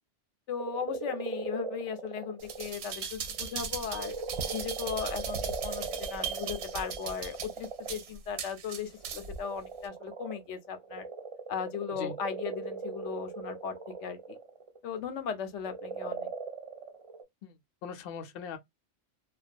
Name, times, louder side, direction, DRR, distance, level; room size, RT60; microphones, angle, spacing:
voice 1, 0.5-4.1 4.5-11.1 11.5-14.4 14.8-16.3, left 7 dB, 85° left, 0.9 m, -37 dB
sound 1, 0.6-2.7 3.2-8.1 8.9-15.0 15.6-17.2, right 4 dB, 45° right, 0.4 m, -39 dB
sound 2, 2.4-9.4 9.8-9.9, right 6 dB, 70° right, 0.8 m, -38 dB
voice 2, 17.4-18.6, left 6 dB, 60° left, 0.7 m, -41 dB
2.3 x 2.2 x 2.4 m
omnidirectional pair, 1.2 m